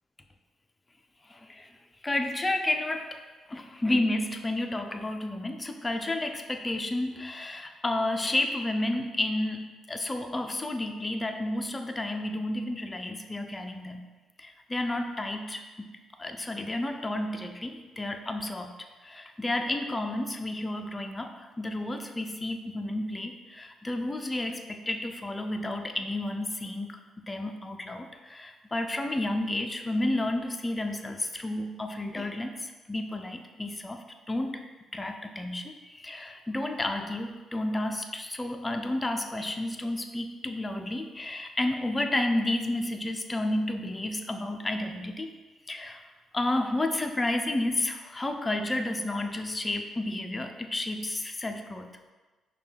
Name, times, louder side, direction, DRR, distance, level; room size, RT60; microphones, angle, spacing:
voice 1, 1.3-1.7 2.0-3.2 3.5-14.1 14.4-15.6 16.2-18.7 19.0-27.0 27.3-32.5 32.9-34.6 34.9-45.3 45.7-46.0 46.3-51.9, left 1 dB, 20° left, 5 dB, 0.4 m, -31 dB
5.2 x 2.2 x 3.3 m, 1.3 s
cardioid pair, 90°, 0 cm